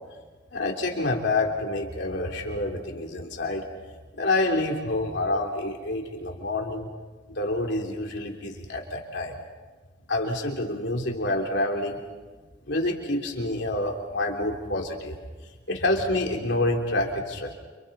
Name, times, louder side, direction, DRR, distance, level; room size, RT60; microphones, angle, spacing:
voice 1, 0.5-3.6 4.1-6.9 7.4-9.4 10.1-12.0 12.7-15.2 15.7-17.5, left 2 dB, 65° left, 1 dB, 3.4 m, -27 dB
30.0 x 28.0 x 4.3 m, 1.3 s
head